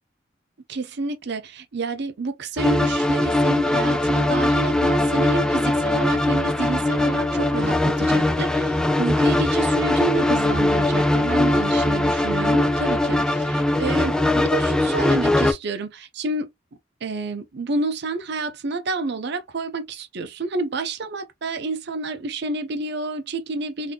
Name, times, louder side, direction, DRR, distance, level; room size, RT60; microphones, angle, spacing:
voice 1, 0.7-16.5 17.0-23.9, right 3 dB, 60° right, 0.6 m, -29 dB
sound 1, 2.6-15.5, left 1 dB, 5° left, 0.4 m, -20 dB
3.6 x 2.7 x 2.2 m
head